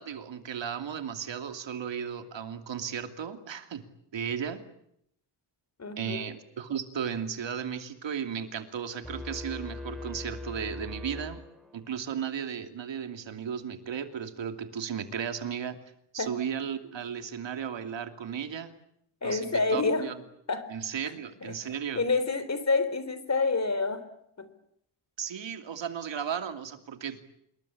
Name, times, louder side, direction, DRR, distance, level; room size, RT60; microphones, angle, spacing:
voice 1, 0.0-3.8 4.1-4.6 6.0-11.4 11.7-15.8 16.1-18.7 19.2-20.1 20.7-22.0 25.2-27.2, right 8 dB, 75° right, 8 dB, 2.9 m, -35 dB
voice 2, 5.8-6.3 16.2-16.3 19.2-20.1 20.5-20.8 21.4-24.1 24.4-24.5, left 3 dB, 35° left, 13 dB, 3.5 m, -28 dB
sound 1, 9.0-12.0, left 2 dB, ahead, 5.6 m, -40 dB
27.0 x 22.5 x 8.6 m, 0.74 s
wide cardioid pair, 120°, 45 cm